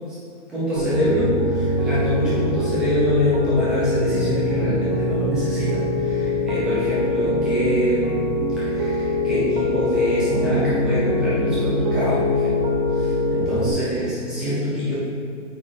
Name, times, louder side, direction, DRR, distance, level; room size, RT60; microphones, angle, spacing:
voice 1, 0.5-8.2 8.6-12.5 12.9-14.9, equal, ahead, -10 dB, 0.5 m, -25 dB
Piano, 0.8-13.7, left 2 dB, 30° right, 1.0 m, -23 dB
8.6 x 7.1 x 4.0 m, 2.2 s
hypercardioid pair, 165°, 38 cm